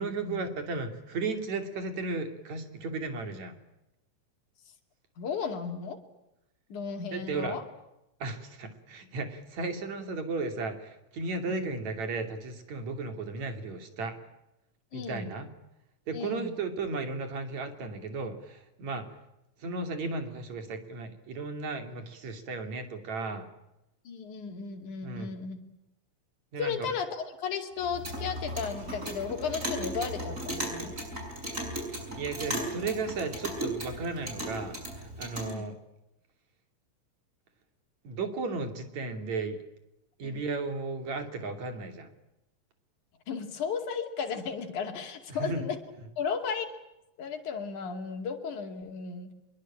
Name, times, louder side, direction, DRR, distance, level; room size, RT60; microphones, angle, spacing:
voice 1, 0.0-3.6 7.1-7.6 8.2-14.1 14.9-15.5 16.1-19.1 19.6-23.5 25.0-25.3 26.5-26.7 32.2-35.8 38.0-39.6 40.2-42.1 45.4-45.7, right 3 dB, 65° right, 6 dB, 4.2 m, -35 dB
voice 2, 5.2-6.0 6.7-7.7 11.5-11.7 14.9-15.4 16.1-16.6 24.1-25.6 26.6-31.0 35.4-35.7 40.2-40.4 43.3-45.8 46.2-46.7 47.2-49.3, left 6 dB, 80° left, 4 dB, 4.0 m, -35 dB
Clock, 27.8-35.5, right 1 dB, 25° right, 7.5 m, -36 dB
25.0 x 23.0 x 8.8 m, 0.91 s
omnidirectional pair, 3.4 m